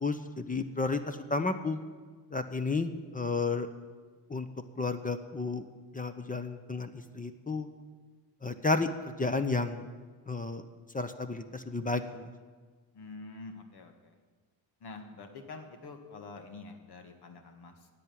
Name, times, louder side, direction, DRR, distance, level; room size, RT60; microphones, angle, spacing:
voice 1, 0.0-1.8 2.3-3.7 4.3-4.5 4.8-5.6 5.9-7.7 8.4-8.9 9.2-9.8 10.3-10.6 10.9-12.3, left 3 dB, 20° left, 9 dB, 0.8 m, -32 dB
voice 2, 12.9-14.2 14.8-17.9, left 3 dB, 65° left, 5 dB, 1.7 m, -47 dB
10.5 x 8.6 x 9.2 m, 1.5 s
cardioid pair, 85°, 41 cm